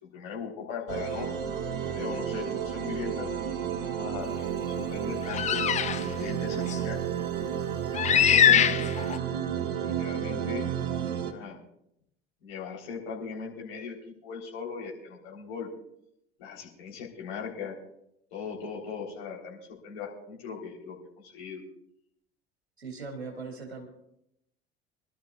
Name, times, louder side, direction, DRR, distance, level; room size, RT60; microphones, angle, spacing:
voice 1, 0.0-1.3 1.9-3.3 4.0-7.0 8.1-8.8 9.8-10.7 11.3-11.6 12.4-14.0 14.2-15.7 16.4-17.8 18.3-21.6, left 6 dB, 60° left, -1 dB, 3.7 m, -39 dB
sound 1, 0.9-11.3, right 8 dB, 60° right, 1.1 m, -31 dB
sound 2, 5.3-6.0 6.7-6.8 7.9-9.2, left 9 dB, 20° left, 0.5 m, -22 dB
voice 2, 22.8-23.9, right 4 dB, 80° right, 3 dB, 2.3 m, -39 dB
25.5 x 12.5 x 2.4 m, 0.77 s
figure-of-eight pair, 65°, 32 cm